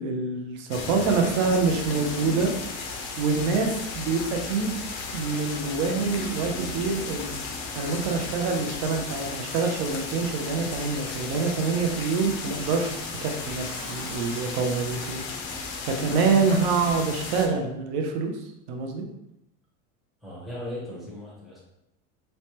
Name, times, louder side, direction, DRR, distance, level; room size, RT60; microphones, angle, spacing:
voice 1, 0.0-2.5 3.2-4.8 5.1-7.3 7.8-18.3 18.7-19.1, right 4 dB, 50° right, 3 dB, 0.5 m, -26 dB
sound 1, 0.7-17.5, left 4 dB, 50° left, 0.5 m, -35 dB
Truck, 11.5-16.2 16.5-16.6 16.9-17.0, right 1 dB, 30° right, 1.0 m, -48 dB
voice 2, 20.2-21.6, left 1 dB, ahead, -6 dB, 0.6 m, -38 dB
3.1 x 2.1 x 2.8 m, 0.85 s
supercardioid pair, 155°, 37 cm